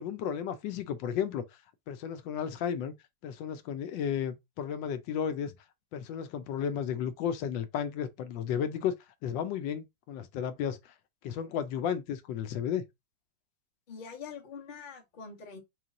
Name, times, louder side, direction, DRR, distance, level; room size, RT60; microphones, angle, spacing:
voice 1, 0.0-1.4 1.9-2.9 3.2-5.5 5.9-9.0 9.2-10.9 11.2-12.8, left 8 dB, 85° left, 1.3 m, -33 dB
voice 2, 13.9-15.6, left 5 dB, 35° left, 0.9 m, -44 dB
3.1 x 3.1 x 3.6 m
omnidirectional pair, 1.9 m